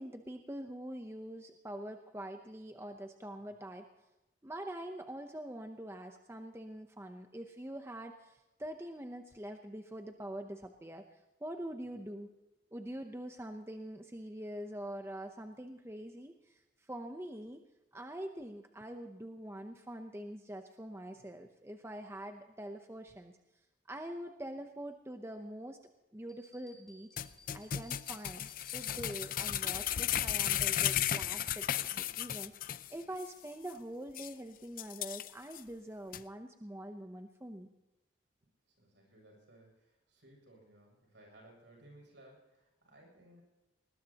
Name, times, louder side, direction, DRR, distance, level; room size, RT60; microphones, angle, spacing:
voice 1, 0.0-3.9 4.4-12.3 12.7-17.6 17.9-23.3 23.9-25.8 26.1-27.1 27.5-37.7, right 1 dB, 15° right, 5 dB, 0.7 m, -44 dB
sound 1, 26.3-29.6, left 1 dB, 5° left, 2.6 m, -61 dB
sound 2, 27.2-32.9 33.2-33.3 33.7-33.8 34.2-34.3 34.8-35.6 36.1-36.2, left 11 dB, 45° left, 0.5 m, -34 dB
voice 2, 38.7-43.4, right 1 dB, 70° right, 0 dB, 7.4 m, -60 dB
20.0 x 20.0 x 2.9 m, 1.0 s
head